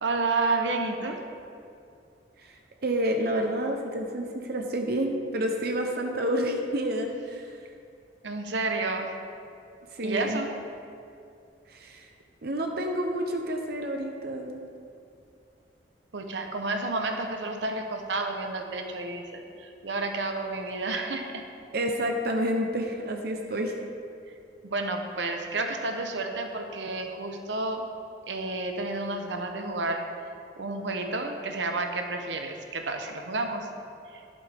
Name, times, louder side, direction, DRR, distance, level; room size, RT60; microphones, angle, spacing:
voice 1, 0.0-1.2 8.2-9.1 10.0-10.5 16.1-21.4 24.6-27.8 28.3-30.1 30.6-33.7 34.1-34.2, right 3 dB, 85° right, 4 dB, 0.9 m, -30 dB
voice 2, 2.4-7.6 9.9-10.4 11.7-12.1 12.4-14.6 21.7-23.7, right 1 dB, 60° right, 3 dB, 0.8 m, -29 dB
11.5 x 11.0 x 3.5 m, 2.5 s
head